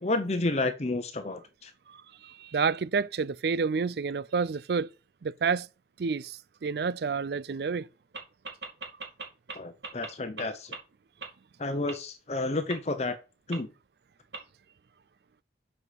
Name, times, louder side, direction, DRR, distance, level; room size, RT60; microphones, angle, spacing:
voice 1, 0.0-1.7 9.6-10.7 11.6-13.2 13.5-13.7, left 2 dB, 40° left, 0.8 m, -30 dB
voice 2, 1.9-4.9 5.2-5.7 6.0-7.9, right 5 dB, 65° right, 0.4 m, -29 dB
sound 1, 8.1-8.2 8.4-9.5 9.8-10.1 10.4-10.5 10.7-10.8 11.2-11.3 11.9-12.0 12.7-12.8 13.5-13.6 14.3-14.4, right 4 dB, 80° right, 2.6 m, -37 dB
7.4 x 4.9 x 6.2 m
head